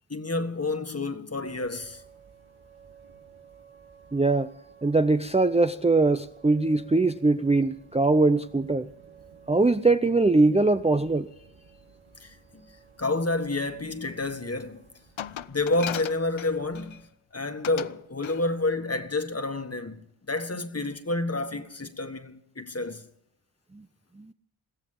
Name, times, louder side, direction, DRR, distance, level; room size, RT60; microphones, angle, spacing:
voice 1, 0.1-2.0 12.2-12.4 12.7-14.8 15.5-17.0 17.3-20.0 20.3-23.0, left 2 dB, 30° left, 1.7 m, -29 dB
sound 1, 1.4-17.0, right 6 dB, 80° right, 4.5 m, -54 dB
voice 2, 4.1-4.5 4.8-8.9 9.5-11.3 23.7-23.8 24.2-24.3, right 3 dB, 15° right, 0.6 m, -22 dB
Glass, 15.2-17.0 17.6-18.0 18.2-18.5, left 10 dB, 70° left, 0.7 m, -36 dB
22.0 x 15.5 x 3.8 m
cardioid pair, 50°, 49 cm